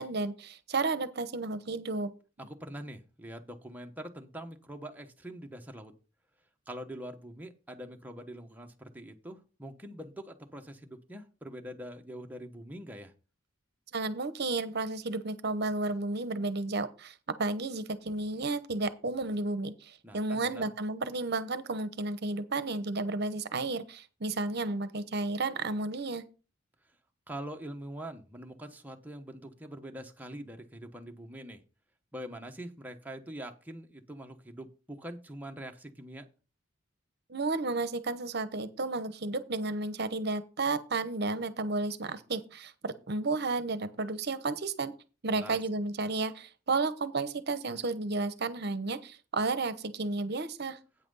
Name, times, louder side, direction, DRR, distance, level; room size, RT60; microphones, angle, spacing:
voice 1, 0.0-2.1 13.9-17.1 17.4-26.2 37.3-44.9 45.2-50.8, right 3 dB, 55° right, 13 dB, 0.9 m, -32 dB
voice 2, 2.4-5.9 6.7-13.1 20.0-20.7 27.3-31.6 32.1-36.2 45.3-45.6, right 1 dB, 10° right, 3 dB, 1.1 m, -44 dB
8.9 x 5.8 x 5.5 m, 0.33 s
head